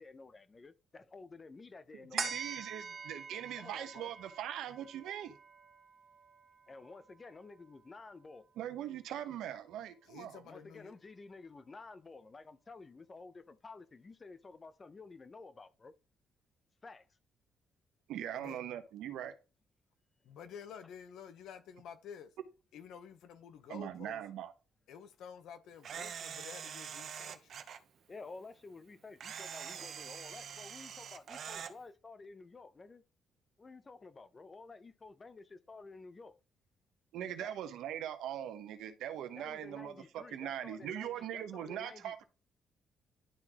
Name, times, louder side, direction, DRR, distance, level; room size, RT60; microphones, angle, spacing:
voice 1, 0.0-2.3 3.6-4.1 6.7-8.5 10.5-15.9 16.8-17.1 28.1-33.0 33.6-36.4 37.4-37.6 39.3-42.2, left 3 dB, 30° left, 0.8 m, -52 dB
voice 2, 1.9-5.4 8.6-10.4 18.1-19.3 23.7-24.5 37.1-42.2, right 10 dB, 85° right, 1.0 m, -41 dB
sound 1, 2.2-8.9 9.4-9.5, right 5 dB, 45° right, 2.1 m, -46 dB
voice 3, 10.0-10.9 18.3-18.6 20.2-22.3 22.7-24.2 24.9-27.5, left 7 dB, 80° left, 1.0 m, -50 dB
Camera, 25.8-27.8 29.2-31.7, right 8 dB, 60° right, 0.8 m, -44 dB
11.5 x 3.9 x 3.0 m
cardioid pair, 90°, 0 cm